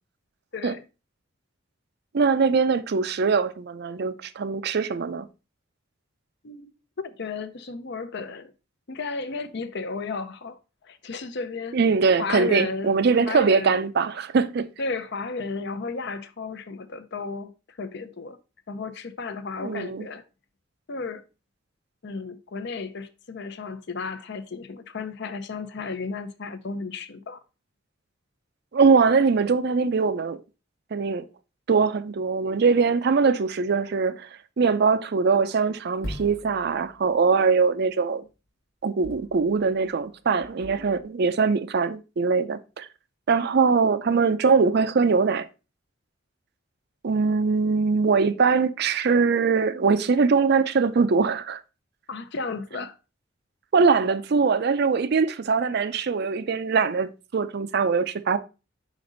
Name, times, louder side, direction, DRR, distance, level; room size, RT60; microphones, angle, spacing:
voice 1, 0.5-0.8 6.4-6.7 7.0-8.5 8.9-10.6 10.8-11.8 12.2-12.9 13.3-13.8 14.8-17.5 17.8-18.4 18.7-20.2 20.9-21.2 22.0-27.4 47.2-47.3 52.1-53.0, left 4 dB, 60° left, 0.6 m, -33 dB
voice 2, 2.1-5.3 11.7-14.7 19.6-20.1 28.7-30.4 30.9-31.3 31.7-34.3 34.6-38.2 38.8-42.9 43.3-45.5 47.0-51.6 53.7-58.4, right 5 dB, 55° right, 0.5 m, -22 dB
sound 1, 36.0-37.2 39.0-40.0 40.4-41.0, equal, 80° left, 1.4 m, -40 dB
5.1 x 5.0 x 3.8 m
head